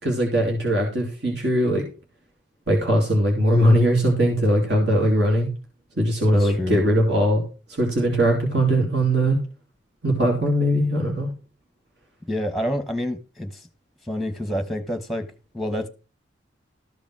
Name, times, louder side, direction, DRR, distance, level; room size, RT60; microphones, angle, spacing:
voice 1, 0.0-1.8 2.7-5.5 6.0-7.4 7.8-9.4 10.0-11.3, equal, 65° right, 2.8 m, -20 dB
voice 2, 6.3-6.9 12.3-13.7 14.0-15.9, equal, ahead, 1.2 m, -28 dB
13.5 x 5.2 x 6.1 m
head